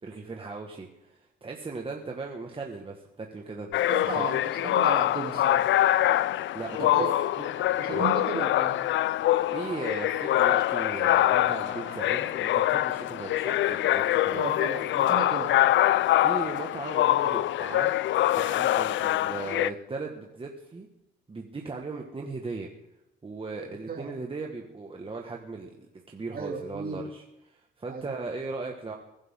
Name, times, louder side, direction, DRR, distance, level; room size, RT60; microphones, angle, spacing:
voice 1, 0.0-3.8 4.1-4.2 6.5-7.1 7.9-8.1 9.5-14.5 16.2-20.9 21.3-22.7 23.2-28.9, right 3 dB, 25° right, 1 dB, 1.7 m, -38 dB
sound 1, 3.7-19.7, left 14 dB, 70° left, 0.4 m, -24 dB
voice 2, 3.9-5.6 6.8-7.1 7.4-7.5 7.8-8.8 14.3-15.5 23.9-24.1 26.3-27.0 27.9-28.1, right 5 dB, 50° right, 0 dB, 3.0 m, -34 dB
sound 2, 6.7-8.4 9.4-12.8, right 12 dB, 90° right, 1.2 m, -48 dB
sound 3, 11.3-17.1, left 4 dB, 85° left, 3.1 m, -53 dB
22.0 x 11.0 x 3.8 m, 0.90 s
cardioid pair, 90°, 20 cm